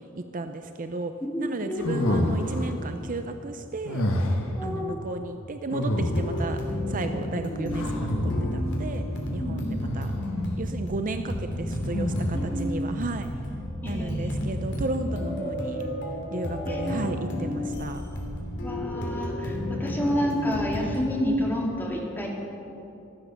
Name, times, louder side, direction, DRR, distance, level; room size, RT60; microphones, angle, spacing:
voice 1, 0.2-1.1 1.4-4.0 4.6-6.6 6.9-9.0 9.3-10.1 10.6-13.3 13.8-15.9 16.3-18.0, right 2 dB, 40° right, 7 dB, 0.6 m, -33 dB
voice 2, 1.2-1.9 4.6-5.0 9.4-9.8 12.3-12.7 13.8-14.3 15.1-15.2 16.6-16.8 18.6-22.3, equal, 10° left, -2 dB, 2.4 m, -29 dB
sound 1, 1.8-2.7 3.8-4.6 5.7-6.5 7.7-8.7 9.8-10.3 11.9-12.6, left 1 dB, 75° left, 1.6 m, -27 dB
sound 2, 6.1-21.1, left 1 dB, 60° left, 3.1 m, -32 dB
15.5 x 12.5 x 6.9 m, 2.9 s
head